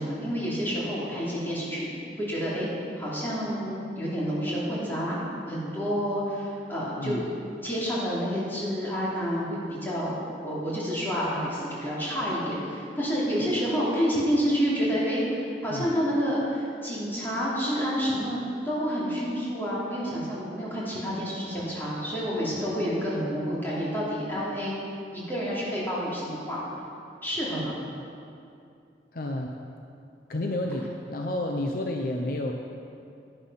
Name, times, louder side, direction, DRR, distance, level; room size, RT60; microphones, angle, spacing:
voice 1, 0.0-1.9 2.2-2.7 3.0-5.2 5.5-7.2 7.6-10.1 10.4-18.4 18.6-24.8 25.1-26.6 27.2-27.7, equal, 10° left, -8 dB, 2.9 m, -29 dB
voice 2, 29.1-29.5 30.3-32.5, left 1 dB, 50° left, 2 dB, 0.6 m, -30 dB
10.5 x 10.0 x 5.6 m, 2.5 s
head